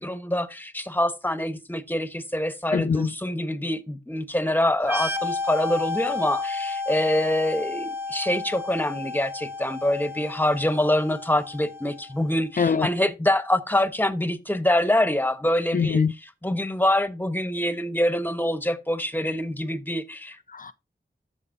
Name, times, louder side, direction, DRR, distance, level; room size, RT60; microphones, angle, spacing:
voice 1, 0.0-16.0 16.4-20.4, left 1 dB, 10° left, 1.2 m, -25 dB
voice 2, 2.7-3.1 12.6-12.9 15.7-16.1 20.5-20.7, left 5 dB, 45° left, 0.4 m, -22 dB
sound 1, 4.8-12.3, left 3 dB, 10° right, 1.1 m, -32 dB
14.0 x 5.4 x 2.7 m
cardioid pair, 50°, 19 cm